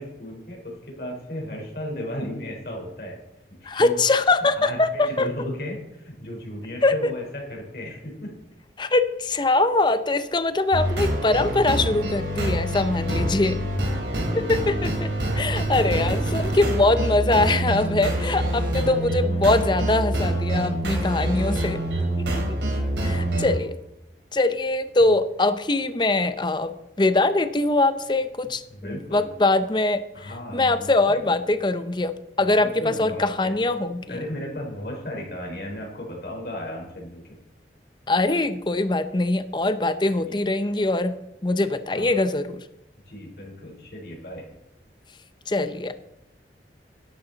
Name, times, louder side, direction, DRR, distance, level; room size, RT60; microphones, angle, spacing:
voice 1, 0.0-3.2 3.5-4.0 4.4-8.4 14.0-14.5 15.1-15.2 22.7-23.2 28.7-29.3 30.1-31.4 32.6-33.6 34.1-37.3 40.1-40.4 41.9-42.1 43.1-44.5, left 1 dB, 60° left, 0 dB, 4.0 m, -35 dB
voice 2, 3.6-5.3 6.8-6.9 8.8-13.6 14.4-15.1 15.4-21.8 22.3-22.4 23.0-23.8 24.3-34.2 38.1-41.2 41.4-42.6 45.5-46.0, left 2 dB, 25° left, 11 dB, 0.6 m, -22 dB
sound 1, 10.7-23.5, right 1 dB, 90° right, 3.3 m, -26 dB
12.5 x 11.5 x 4.0 m, 0.92 s
head